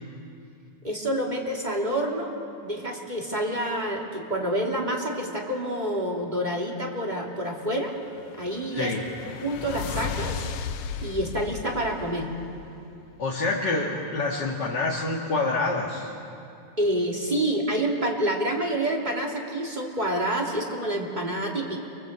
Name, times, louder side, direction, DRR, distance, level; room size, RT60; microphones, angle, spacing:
voice 1, 0.8-2.3 2.6-7.9 8.4-8.9 9.4-10.4 11.0-12.3 16.8-21.8, right 1 dB, 15° right, -1 dB, 2.9 m, -28 dB
sound 1, 8.0-13.0, left 7 dB, 75° left, 2.1 m, -35 dB
voice 2, 8.7-9.0 13.2-16.1, left 3 dB, 40° left, -3 dB, 2.4 m, -27 dB
29.0 x 23.5 x 8.2 m, 2.7 s
omnidirectional pair, 3.4 m